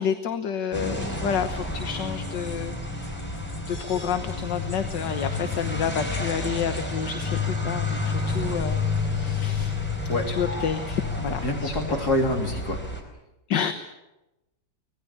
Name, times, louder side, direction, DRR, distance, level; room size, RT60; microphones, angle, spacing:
voice 1, 0.0-2.8 3.7-8.9 9.1-9.8 10.3-12.0 13.5-13.7, left 8 dB, 70° left, 8 dB, 1.8 m, -29 dB
sound 1, 0.7-13.0, left 3 dB, 5° left, 4.6 m, -30 dB
voice 2, 11.4-12.8, left 1 dB, 55° left, 2 dB, 4.1 m, -26 dB
25.0 x 19.5 x 8.6 m, 0.96 s
omnidirectional pair, 2.0 m